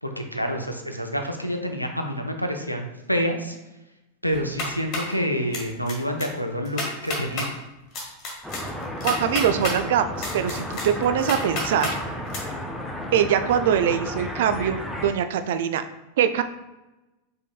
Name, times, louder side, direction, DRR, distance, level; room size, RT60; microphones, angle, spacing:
voice 1, 0.0-3.6 4.2-7.5, equal, 90° left, 4 dB, 0.5 m, -28 dB
sound 1, 4.3-5.1 5.5-5.9 6.2-6.3 6.6-7.5 7.9-9.8 10.2-11.9 12.3-12.4, left 2 dB, 35° left, 1.5 m, -30 dB
sound 2, 8.4-15.1, left 1 dB, 5° left, 0.6 m, -33 dB
voice 2, 9.0-12.0 13.1-15.8 16.2-16.4, right 8 dB, 55° right, 10 dB, 0.3 m, -23 dB
5.1 x 3.8 x 2.3 m, 1.0 s
figure-of-eight pair, 90°, 0 cm